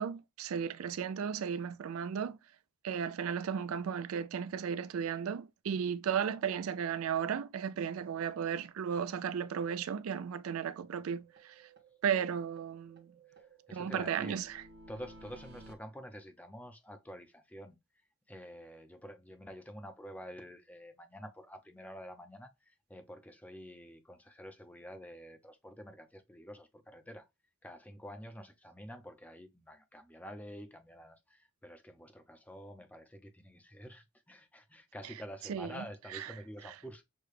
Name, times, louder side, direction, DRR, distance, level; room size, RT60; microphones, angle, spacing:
voice 1, 0.0-2.4 2.8-11.6 12.0-13.1 13.7-14.6 35.5-35.8 36.1-36.3, right 7 dB, 80° right, 0.4 m, -35 dB
sound 1, 9.4-9.5 9.8-9.9 10.2-10.3 10.6-10.7 11.0-12.3 12.6-15.7, right 2 dB, 50° right, 0.9 m, -56 dB
voice 2, 13.4-14.4 14.9-17.8 18.3-27.3 27.6-37.0, equal, 5° left, 0.6 m, -48 dB
6.4 x 2.2 x 3.3 m
head